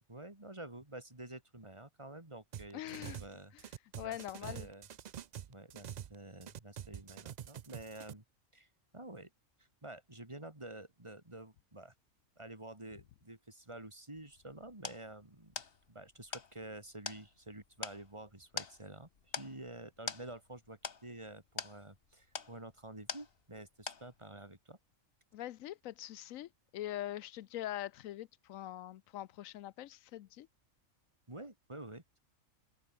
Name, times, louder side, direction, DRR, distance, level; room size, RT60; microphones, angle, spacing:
voice 1, 0.1-3.5 4.0-4.9 5.5-8.2 8.5-8.7 8.9-9.3 9.8-11.9 12.4-15.5 15.9-19.1 19.4-24.8 31.3-32.2, right 1 dB, 20° right, 3.8 m, -49 dB
sound 1, 2.5-3.3 3.6-6.2 6.4-8.1, right 9 dB, 85° right, 0.3 m, -46 dB
voice 2, 2.7-3.2 4.0-4.7 25.3-30.5, left 13 dB, 85° left, 1.0 m, -43 dB
sound 2, 14.2-23.6 23.9-24.4, left 5 dB, 45° left, 1.5 m, -45 dB
omnidirectional pair, 1.4 m